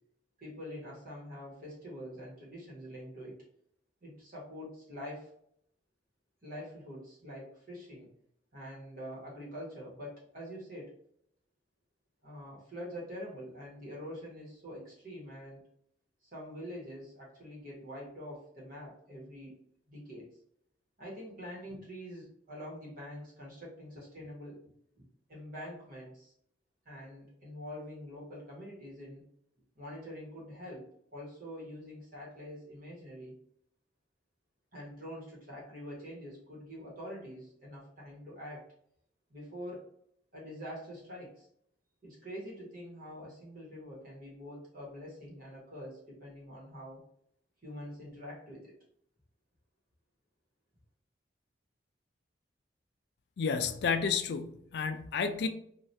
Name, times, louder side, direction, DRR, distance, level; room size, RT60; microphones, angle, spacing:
voice 1, 0.4-3.4 4.0-5.3 6.4-8.1 8.5-10.9 12.2-15.6 16.3-19.5 19.9-20.3 21.0-24.6 25.0-25.1 25.3-26.3 26.8-29.3 29.8-33.4 34.7-38.7 39.3-39.9 40.3-41.5 42.0-47.0 47.6-48.7, equal, 45° right, -5 dB, 1.1 m, -45 dB
voice 2, 53.4-55.5, left 5 dB, 60° left, 8 dB, 0.3 m, -31 dB
2.7 x 2.4 x 3.2 m, 0.69 s
head